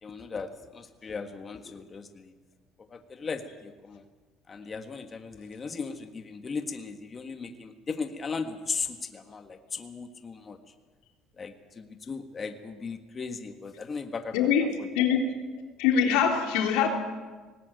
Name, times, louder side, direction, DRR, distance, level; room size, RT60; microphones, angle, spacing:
voice 1, 0.0-2.3 2.9-4.0 4.5-10.6 11.4-14.5 14.8-14.9, left 5 dB, 30° left, 6 dB, 1.6 m, -37 dB
voice 2, 14.3-14.7 15.0-15.3 15.8-16.9, left 7 dB, 90° left, 2 dB, 3.5 m, -23 dB
19.0 x 18.0 x 9.3 m, 1.3 s
cardioid pair, 120°, 0 cm